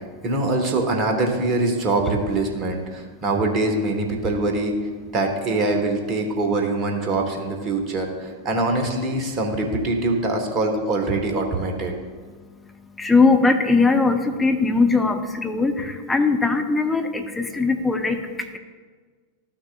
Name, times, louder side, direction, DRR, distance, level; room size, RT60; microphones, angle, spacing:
voice 1, 0.2-4.7 5.1-11.9, right 2 dB, 35° right, 3 dB, 1.5 m, -23 dB
voice 2, 13.0-18.2, left 3 dB, 10° left, 5 dB, 0.7 m, -20 dB
13.0 x 6.1 x 2.4 m, 1.5 s
figure-of-eight pair, 90°, 0 cm